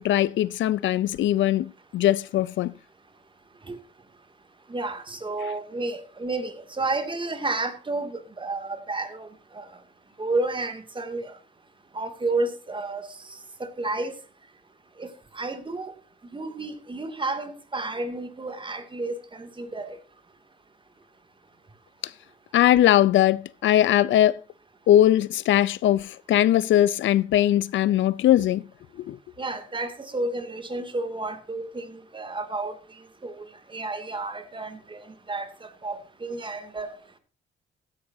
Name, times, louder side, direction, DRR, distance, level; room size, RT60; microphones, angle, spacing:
voice 1, 0.0-2.7 5.4-5.5 22.0-22.1 22.5-24.4 24.9-28.6 29.1-29.2, left 12 dB, 75° left, 0.6 m, -20 dB
voice 2, 4.7-9.3 9.5-9.7 10.2-11.3 11.9-13.1 13.6-14.1 15.0-15.1 15.3-15.9 16.3-20.0 29.4-32.8 33.2-33.4 33.7-36.9, right 2 dB, 25° right, 2.5 m, -31 dB
15.0 x 11.0 x 2.8 m
cardioid pair, 90°, 20 cm